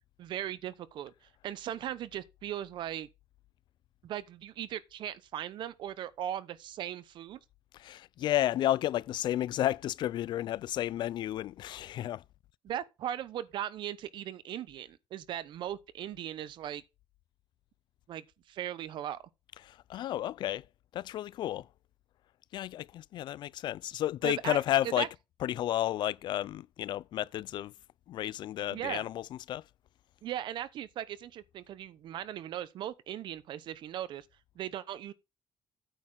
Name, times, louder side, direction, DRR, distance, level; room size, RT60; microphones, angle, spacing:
voice 1, 0.2-1.1 1.4-3.1 4.0-7.4 12.6-16.8 18.1-19.2 24.2-24.6 25.0-25.1 28.7-29.0 30.2-34.2 34.6-35.1, right 11 dB, 70° right, 0.8 m, -38 dB
voice 2, 7.7-12.2 19.6-20.7 20.9-21.7 22.5-25.1 25.4-27.7 28.1-29.6, left 13 dB, 65° left, 0.4 m, -32 dB
9.1 x 4.2 x 6.2 m
cardioid pair, 115°, 8 cm